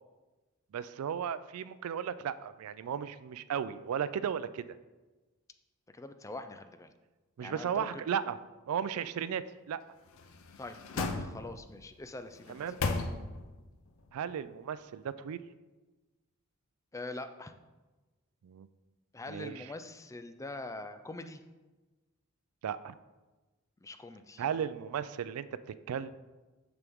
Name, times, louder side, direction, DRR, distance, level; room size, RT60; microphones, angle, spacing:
voice 1, 0.7-4.7 7.4-8.4 8.7-9.8 12.5-12.8 14.1-15.4 18.4-18.7 19.3-19.7 22.6-22.9 24.4-25.5 25.9-26.1, right 8 dB, 90° right, 14 dB, 0.3 m, -35 dB
voice 2, 5.9-6.9 7.4-8.0 10.6-12.6 16.9-17.5 19.1-21.4 23.8-24.4, left 2 dB, 15° left, 9 dB, 0.3 m, -43 dB
sound 1, 10.1-11.8 12.3-13.6 14.0-14.1, left 3 dB, 65° left, 0.6 m, -36 dB
6.8 x 6.1 x 3.5 m, 1.2 s
head